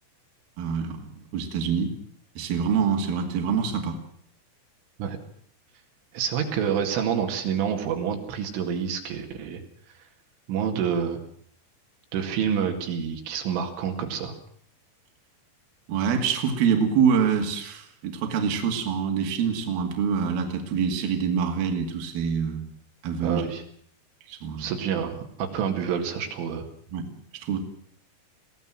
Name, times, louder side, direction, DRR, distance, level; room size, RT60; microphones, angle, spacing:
voice 1, 0.6-1.9 2.4-4.0 15.9-22.7 23.0-23.4 24.3-24.7 26.9-27.1 27.4-27.6, right 6 dB, 55° right, 3 dB, 3.8 m, -25 dB
voice 2, 6.1-9.6 10.5-11.2 12.1-14.4 23.2-23.6 24.6-26.7, right 7 dB, 80° right, 3 dB, 4.6 m, -28 dB
21.5 x 17.0 x 7.6 m, 0.62 s
omnidirectional pair, 5.6 m